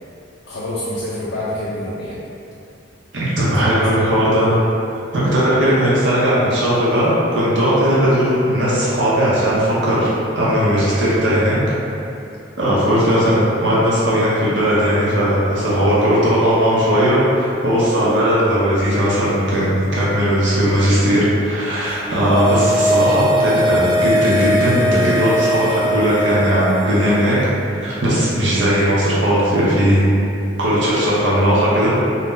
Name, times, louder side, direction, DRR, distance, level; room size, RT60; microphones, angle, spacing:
voice 1, 0.5-2.2 3.8-3.9 12.8-13.1, left 1 dB, 65° left, -10 dB, 0.5 m, -27 dB
voice 2, 3.1-4.6 5.1-10.1 10.4-11.6 12.6-27.4 27.7-30.0 30.6-31.9, equal, 75° right, -8 dB, 0.7 m, -17 dB
sound 1, 21.9-27.4 27.7-27.8, equal, ahead, 0.7 m, -20 dB
2.7 x 2.1 x 3.6 m, 2.7 s
head